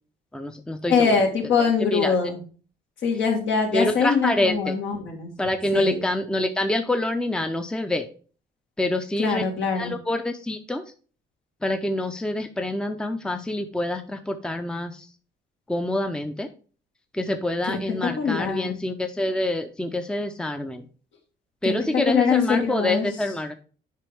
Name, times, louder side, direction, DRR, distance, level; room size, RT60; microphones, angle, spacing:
voice 1, 0.3-1.2 1.8-2.1 3.7-4.8 5.4-8.1 8.8-9.4 9.8-10.8 11.6-15.1 15.7-16.5 17.1-20.9 21.6-23.5, left 1 dB, 5° left, 7 dB, 0.6 m, -26 dB
voice 2, 0.9-2.4 3.0-5.3 5.7-6.0 9.2-9.9 17.7-17.8 18.2-18.7 21.6-23.1, left 5 dB, 70° left, 1 dB, 2.0 m, -23 dB
7.5 x 5.0 x 3.5 m, 0.39 s
cardioid pair, 90°, 20 cm